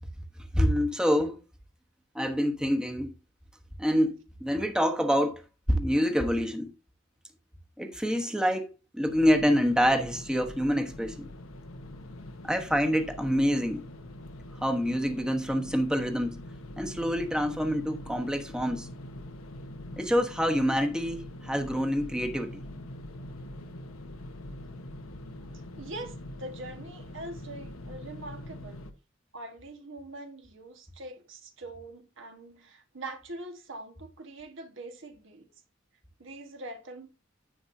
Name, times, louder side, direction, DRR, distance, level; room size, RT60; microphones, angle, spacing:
voice 1, 0.5-1.4 2.1-3.1 3.8-5.4 5.7-6.7 7.8-11.3 12.4-13.8 14.6-16.4 16.8-18.9 20.0-22.6, equal, 5° right, 1.1 m, -26 dB
sound 1, 9.0-28.9, left 1 dB, 90° left, 1.2 m, -43 dB
voice 2, 25.8-28.8 29.3-35.5 36.2-37.1, right 2 dB, 65° right, 1.5 m, -43 dB
10.0 x 8.6 x 2.7 m
head